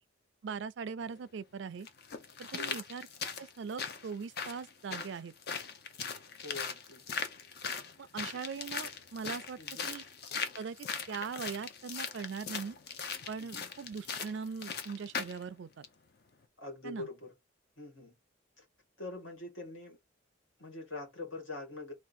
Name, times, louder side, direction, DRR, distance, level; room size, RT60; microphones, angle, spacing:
voice 1, 0.4-1.9 2.4-5.3 8.0-9.6 9.9-10.0 10.6-12.8 13.3-15.9 16.8-17.1, right 5 dB, 60° right, 0.4 m, -41 dB
sound 1, 1.0-1.1 1.9-15.4 15.8-15.9, left 6 dB, 50° left, 0.6 m, -40 dB
voice 2, 6.4-7.2 9.6-9.9 13.4-13.7 16.6-17.3 17.8-18.1 18.6-18.7 19.0-20.0 20.6-21.9, left 2 dB, 70° left, 2.0 m, -44 dB
3.6 x 2.4 x 4.2 m
head